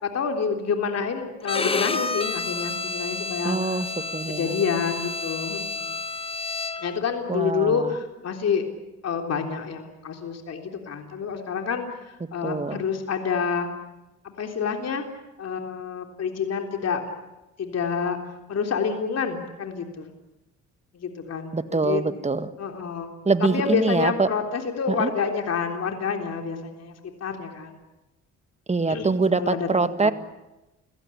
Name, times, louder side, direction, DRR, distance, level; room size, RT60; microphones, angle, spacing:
voice 1, 0.0-6.0 6.8-8.6 9.0-11.8 12.3-13.7 14.2-15.1 15.4-17.0 17.6-18.2 18.5-20.1 20.9-22.0 22.6-23.1 23.4-26.9 27.2-27.8 28.9-30.1, left 6 dB, 55° left, 4 dB, 3.5 m, -28 dB
Bowed string instrument, 1.4-7.0, left 3 dB, 20° left, 1.3 m, -30 dB
voice 2, 3.4-3.9 4.1-4.6 7.3-7.9 12.4-12.8 21.5-22.5 23.3-24.3 24.9-25.1 28.7-30.1, right 3 dB, 20° right, 11 dB, 1.7 m, -24 dB
29.0 x 17.0 x 10.0 m, 1.0 s
cardioid pair, 90°, 30 cm